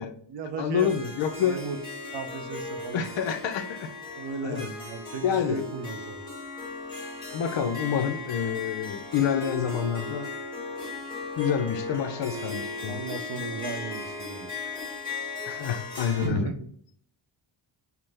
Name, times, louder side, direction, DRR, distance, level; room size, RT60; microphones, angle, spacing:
voice 1, 0.0-1.1 1.4-1.8 2.1-3.1 4.1-6.2 12.9-14.8 16.2-16.7, right 4 dB, 60° right, 7 dB, 0.7 m, -36 dB
voice 2, 0.6-1.6 2.9-3.9 4.4-4.7 5.2-5.6 7.3-10.3 11.4-13.0 15.5-16.5, left 8 dB, 65° left, 8 dB, 0.5 m, -28 dB
Harp, 0.8-16.3, left 3 dB, 10° left, 1.4 m, -37 dB
5.8 x 2.0 x 3.3 m, 0.63 s
wide cardioid pair, 135°, 49 cm